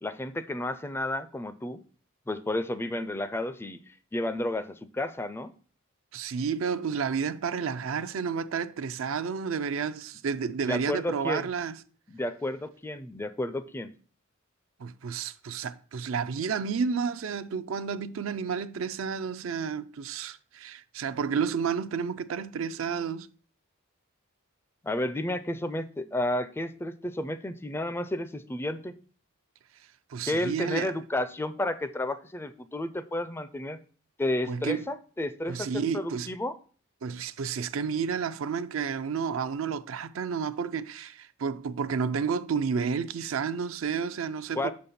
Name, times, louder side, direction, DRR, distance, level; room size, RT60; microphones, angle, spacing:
voice 1, 0.0-1.8 2.3-3.8 4.1-5.5 10.7-11.5 12.1-13.9 24.8-29.0 30.3-33.8 34.2-36.5 44.6-44.7, left 1 dB, 10° left, 0.3 m, -31 dB
voice 2, 6.1-11.8 14.8-23.3 30.1-30.9 34.5-34.9 35.5-36.3 37.0-44.7, right 6 dB, 70° right, 0.4 m, -31 dB
6.4 x 5.3 x 4.1 m
head